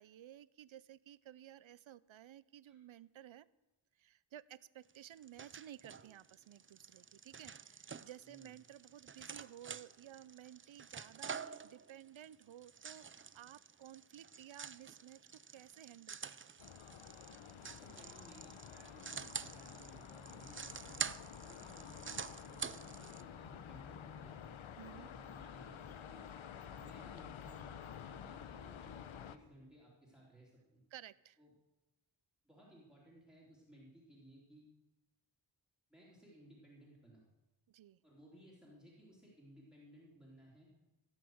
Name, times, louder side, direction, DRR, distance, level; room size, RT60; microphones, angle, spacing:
voice 1, 0.0-3.5 4.0-15.2 15.5-16.5 24.8-25.1 30.9-31.4 37.7-38.0, right 11 dB, 80° right, 19 dB, 0.6 m, -55 dB
sound 1, 4.9-23.2, right 6 dB, 30° right, 0.4 m, -48 dB
voice 2, 8.2-8.5 17.5-21.0 21.4-24.5 24.9-26.2 26.6-30.8 31.4-31.5 32.4-34.6 35.9-37.3 38.0-40.7, right 1 dB, ahead, -5 dB, 3.5 m, -60 dB
sound 2, 16.6-29.4, left 8 dB, 85° left, 0.8 m, -51 dB
16.0 x 6.6 x 7.9 m, 1.0 s
wide cardioid pair, 105°, 47 cm